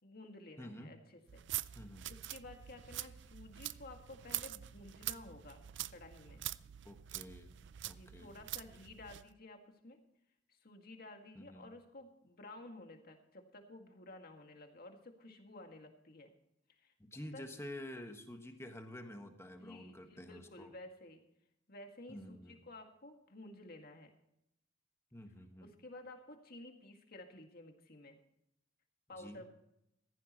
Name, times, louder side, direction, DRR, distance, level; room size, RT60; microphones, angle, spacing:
voice 1, 0.0-1.4 2.1-5.6 5.9-6.4 7.9-10.0 10.5-16.3 16.7-17.4 19.6-21.2 21.7-24.1 25.6-28.2 29.1-29.5, left 2 dB, 50° left, 4 dB, 2.0 m, -53 dB
voice 2, 0.6-0.9 1.8-2.1 6.8-7.6 7.9-8.4 11.3-11.7 17.0-20.7 22.1-22.6 25.1-25.7 29.2-29.5, left 1 dB, 15° left, 5 dB, 1.4 m, -49 dB
sound 1, 1.3-9.3, right 14 dB, 65° right, 0.4 m, -45 dB
15.0 x 15.0 x 3.0 m, 0.80 s
head